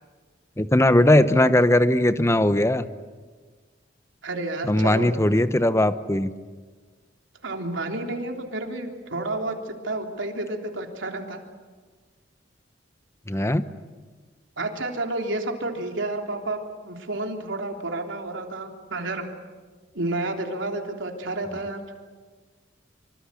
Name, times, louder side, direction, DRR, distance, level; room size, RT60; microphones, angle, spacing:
voice 1, 0.6-2.9 4.6-6.3 13.3-13.6, left 1 dB, 15° left, 12 dB, 1.0 m, -19 dB
voice 2, 4.2-5.1 7.4-11.4 14.6-19.2 19.9-21.8, right 2 dB, 85° right, 3 dB, 3.3 m, -30 dB
25.5 x 25.0 x 8.5 m, 1.5 s
head